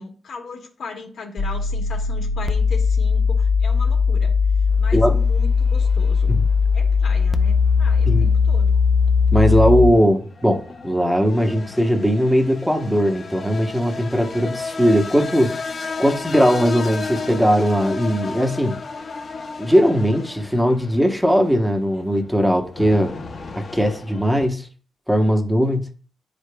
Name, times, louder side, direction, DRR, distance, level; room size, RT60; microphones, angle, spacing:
voice 1, 0.0-4.3 4.8-6.3 6.7-8.8, left 4 dB, 80° left, 1.6 m, -37 dB
sound 1, 1.4-9.9, left 5 dB, 30° left, 0.5 m, -18 dB
sound 2, 4.7-24.5, left 4 dB, 55° left, 0.8 m, -35 dB
voice 2, 9.3-15.5 16.0-18.8 19.6-23.1 23.7-24.7 25.1-25.9, equal, 5° right, 1.0 m, -19 dB
10.5 x 5.0 x 2.3 m
cardioid pair, 105°, 0 cm